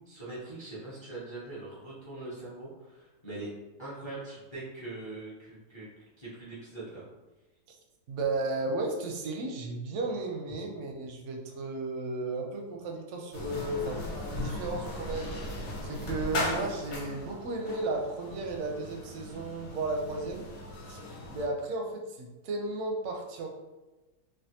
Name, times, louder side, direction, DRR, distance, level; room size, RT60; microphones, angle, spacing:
voice 1, 0.1-3.5 3.8-5.9 6.2-7.0, right 2 dB, 30° left, -9 dB, 0.5 m, -42 dB
voice 2, 8.1-14.0 14.3-20.5 20.9-21.0 21.3-23.5, right 2 dB, 65° right, 1 dB, 0.7 m, -34 dB
sound 1, 13.3-21.5, left 1 dB, 80° left, 1.3 m, -38 dB
3.4 x 2.3 x 2.7 m, 1.1 s
omnidirectional pair, 1.7 m